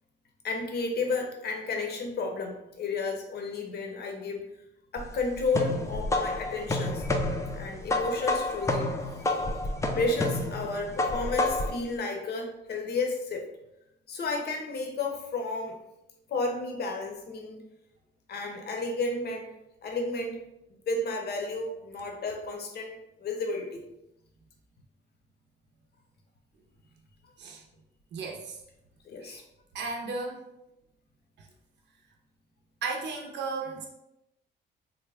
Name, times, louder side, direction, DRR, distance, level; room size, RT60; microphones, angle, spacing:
voice 1, 0.4-4.4 4.9-7.1 7.5-8.9 10.0-13.5 14.1-15.7 16.3-17.6 18.3-19.5 19.8-20.4 20.9-23.8 29.0-29.4, left 3 dB, 55° left, 2 dB, 0.7 m, -32 dB
sound 1, 5.0-11.8, left 2 dB, 15° left, 0.4 m, -29 dB
voice 2, 28.1-28.6 29.2-29.4 29.7-30.4 31.4-31.5 32.8-33.9, right 4 dB, 65° right, 1 dB, 0.6 m, -35 dB
3.5 x 2.1 x 3.3 m, 0.88 s
cardioid pair, 90°, 20 cm